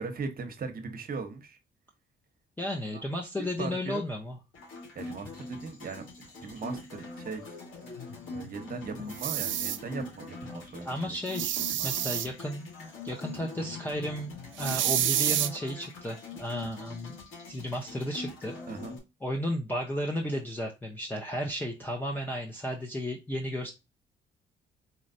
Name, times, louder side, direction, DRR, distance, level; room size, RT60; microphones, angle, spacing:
voice 1, 0.0-1.6 2.9-3.0 3.4-4.0 4.9-6.0 6.4-7.6 8.3-11.9 18.7-19.0, right 4 dB, 45° right, 0.9 m, -39 dB
voice 2, 2.6-4.4 10.5-17.2 17.5-18.6 19.2-23.7, equal, 10° left, 0.8 m, -34 dB
sound 1, 4.5-19.0, left 4 dB, 85° left, 2.2 m, -43 dB
sound 2, 9.1-9.8 11.3-12.3 14.6-15.5, right 12 dB, 75° right, 0.5 m, -28 dB
4.2 x 3.1 x 2.6 m
cardioid pair, 90°, 20 cm